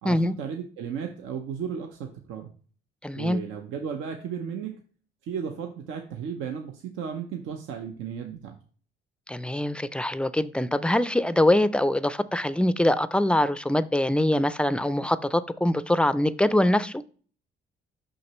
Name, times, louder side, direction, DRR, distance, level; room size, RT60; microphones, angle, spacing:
voice 1, 0.0-2.5 3.1-4.8 5.2-8.6, right 7 dB, 85° right, 4 dB, 0.7 m, -34 dB
voice 2, 3.0-3.4 9.3-17.0, left 1 dB, 5° left, 15 dB, 0.3 m, -23 dB
6.4 x 5.8 x 3.0 m, 0.43 s
cardioid pair, 90°, 20 cm